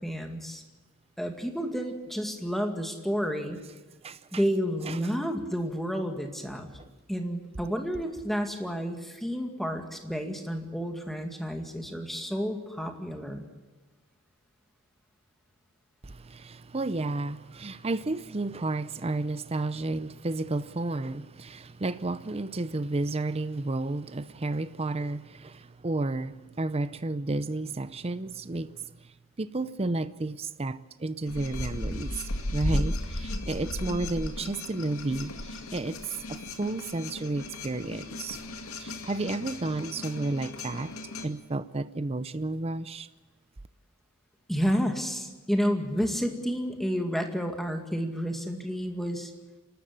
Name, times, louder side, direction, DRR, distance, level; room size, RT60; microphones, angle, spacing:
voice 1, 0.0-0.6 1.2-3.6 4.3-6.7 7.1-13.4 44.5-49.3, equal, ahead, 2.2 m, -30 dB
voice 2, 4.0-4.4 4.9-5.0 6.8-6.9 16.0-28.8 29.4-32.1 32.5-38.4 38.8-40.9 41.2-43.1, right 2 dB, 25° right, 0.6 m, -32 dB
sound 1, 31.3-41.3, left 1 dB, 70° left, 2.1 m, -35 dB
28.0 x 13.0 x 8.7 m
head